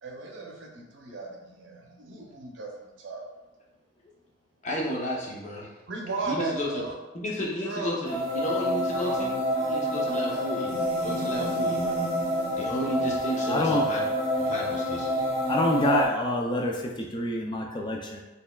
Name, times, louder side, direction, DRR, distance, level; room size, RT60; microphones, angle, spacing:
voice 1, 0.0-3.2 5.9-6.9 7.6-8.0 8.9-9.2 9.6-10.5 12.4-12.8, right 3 dB, 90° right, 0 dB, 0.7 m, -36 dB
voice 2, 4.6-5.7 6.2-6.8 7.1-9.4 9.6-10.7 11.0-12.0 12.6-14.0 14.4-15.2, equal, 40° left, -3 dB, 0.8 m, -32 dB
sound 1, 8.0-16.0, equal, 35° right, 1.2 m, -28 dB
voice 3, 13.5-13.9 15.5-18.2, left 1 dB, 25° left, 1 dB, 0.4 m, -26 dB
4.2 x 3.5 x 2.3 m, 1.1 s
head